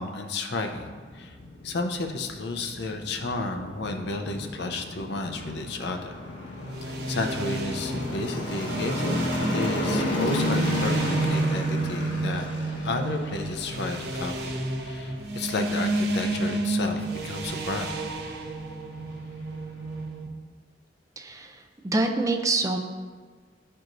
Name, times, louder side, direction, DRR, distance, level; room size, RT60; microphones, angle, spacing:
voice 1, 0.0-1.4 1.6-6.2 6.8-9.1 9.5-12.5 12.8-17.9, left 2 dB, 65° left, 4 dB, 0.6 m, -32 dB
sound 1, 0.7-20.0, left 1 dB, 85° left, 1.3 m, -34 dB
sound 2, 6.6-20.3, right 2 dB, 60° right, 0.8 m, -30 dB
voice 2, 21.2-22.8, right 2 dB, 20° right, 4 dB, 0.4 m, -26 dB
11.5 x 4.6 x 2.6 m, 1.5 s
head